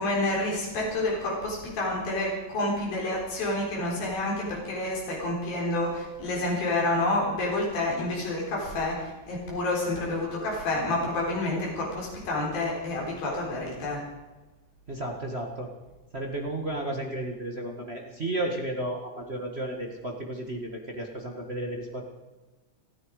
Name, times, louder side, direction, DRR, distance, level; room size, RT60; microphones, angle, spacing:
voice 1, 0.0-14.0, left 2 dB, 85° left, -3 dB, 5.9 m, -29 dB
voice 2, 14.9-15.7 16.1-22.0, right 1 dB, 40° right, 1 dB, 0.9 m, -33 dB
30.0 x 10.0 x 4.8 m, 1.2 s
omnidirectional pair, 4.0 m